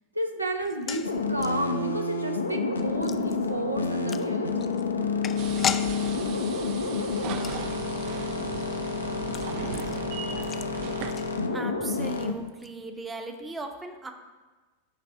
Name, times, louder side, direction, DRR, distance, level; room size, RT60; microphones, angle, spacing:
voice 1, 0.1-4.8, right 1 dB, 85° right, 5 dB, 0.7 m, -31 dB
sound 1, 0.6-11.8 12.1-12.2 12.5-12.7, left 8 dB, 25° left, 0.3 m, -39 dB
sound 2, 1.0-12.3, left 4 dB, 75° left, 0.5 m, -29 dB
sound 3, 5.4-11.1, right 8 dB, 45° right, 0.4 m, -38 dB
voice 2, 11.1-14.1, right 3 dB, 15° right, 6 dB, 0.8 m, -38 dB
9.5 x 3.4 x 4.7 m, 1.3 s
figure-of-eight pair, 90°, 0 cm